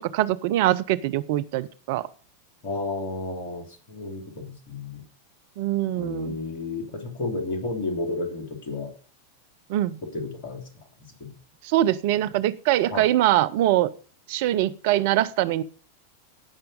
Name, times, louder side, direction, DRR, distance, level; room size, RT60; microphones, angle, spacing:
voice 1, 0.0-2.0 5.6-6.3 9.7-10.0 11.7-13.9 14.3-15.6, right 14 dB, 50° right, 15 dB, 0.5 m, -23 dB
voice 2, 2.6-5.0 5.9-8.9 10.1-10.6 11.2-11.3 12.9-13.1, left 3 dB, 50° left, 4 dB, 3.1 m, -32 dB
16.0 x 5.8 x 5.0 m, 0.40 s
figure-of-eight pair, 90°, 0 cm